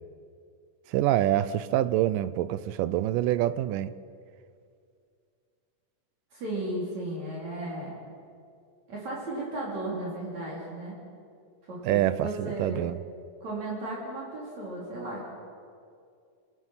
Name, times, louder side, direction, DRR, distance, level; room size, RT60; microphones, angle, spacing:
voice 1, 0.9-3.9 11.8-13.0, right 13 dB, 85° right, 15 dB, 2.3 m, -26 dB
voice 2, 6.3-8.0 8.9-11.0 11.7-12.9 13.4-15.3, right 1 dB, 55° right, -5 dB, 4.9 m, -35 dB
26.0 x 19.0 x 5.7 m, 2.3 s
omnidirectional pair, 3.9 m